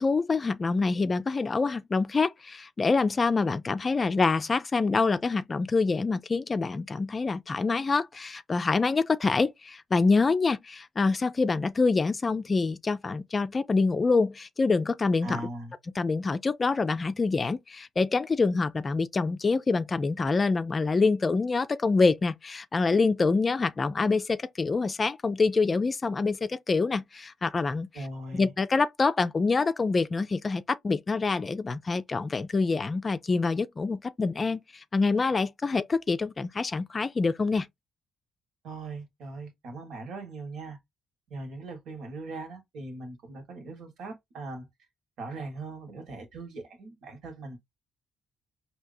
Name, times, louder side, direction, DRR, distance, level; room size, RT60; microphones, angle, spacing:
voice 1, 0.0-15.4 16.0-27.9 28.3-37.7, left 4 dB, 30° left, 0.4 m, -26 dB
voice 2, 15.2-15.7 27.9-28.5 38.6-40.8 41.3-44.7 45.2-47.6, right 2 dB, 75° right, 1.6 m, -40 dB
4.6 x 2.8 x 2.6 m
cardioid pair, 90°, 0 cm